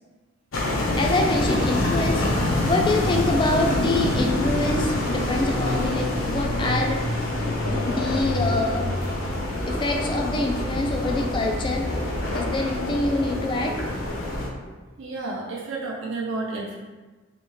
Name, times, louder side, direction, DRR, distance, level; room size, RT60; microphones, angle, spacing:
sound 1, 0.5-14.5, left 1 dB, 90° left, 0.7 m, -26 dB
voice 1, 1.0-2.2 2.6-7.0 7.9-8.9 9.7-11.9 12.3-13.7, left 2 dB, 25° left, 2 dB, 0.3 m, -25 dB
sound 2, 1.7-13.9, equal, 25° right, 0.7 m, -37 dB
voice 2, 15.0-16.8, right 3 dB, 75° right, -3 dB, 0.6 m, -31 dB
3.4 x 2.7 x 3.1 m, 1.3 s
head